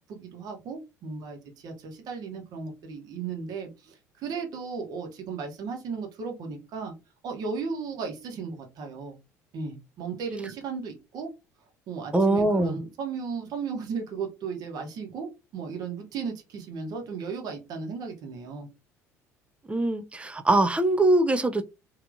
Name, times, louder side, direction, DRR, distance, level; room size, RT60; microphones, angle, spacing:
voice 1, 0.1-6.9 7.2-9.2 9.5-11.3 11.9-18.7, right 5 dB, 50° right, 1.1 m, -35 dB
voice 2, 12.1-12.8 19.7-21.6, right 2 dB, 15° right, 0.5 m, -22 dB
3.3 x 2.8 x 2.6 m
figure-of-eight pair, 60°, 9 cm